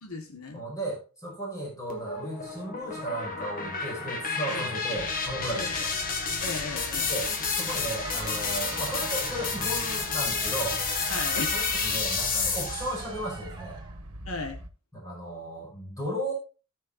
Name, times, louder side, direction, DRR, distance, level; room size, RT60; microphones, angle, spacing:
voice 1, 0.0-0.6 4.5-4.6 5.5-5.8 6.4-7.1 11.1-11.6 14.3-14.6, left 3 dB, 70° left, 4 dB, 1.6 m, -35 dB
voice 2, 0.5-5.9 7.0-10.8 11.5-13.8 14.9-16.3, right 1 dB, 15° left, -3 dB, 5.4 m, -35 dB
sound 1, 1.9-13.0, left 5 dB, 40° left, 2.0 m, -30 dB
sound 2, 5.0-14.7, right 1 dB, 85° right, 1.6 m, -43 dB
Crowd, 7.6-14.0, right 4 dB, 20° right, 1.9 m, -43 dB
18.0 x 6.4 x 2.6 m, 0.33 s
head